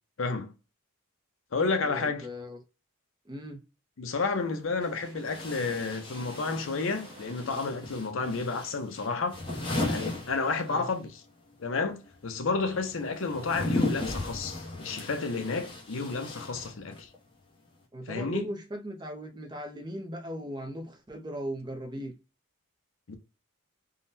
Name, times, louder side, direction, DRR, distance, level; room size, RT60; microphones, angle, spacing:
voice 1, 0.2-0.5 1.5-2.3 4.0-9.4 9.9-11.2 11.6-12.0 12.2-17.1 18.1-18.5 23.1-23.2, left 4 dB, 60° left, 0.6 m, -31 dB
voice 2, 1.9-2.6 3.3-3.6 10.7-10.9 17.9-22.1, equal, 20° right, 0.5 m, -38 dB
sound 1, 4.3-4.4 5.2-11.0 11.3-17.2, left 2 dB, 20° left, 0.8 m, -36 dB
sound 2, 4.8-7.9, right 2 dB, 85° right, 1.0 m, -50 dB
3.7 x 2.1 x 2.6 m
head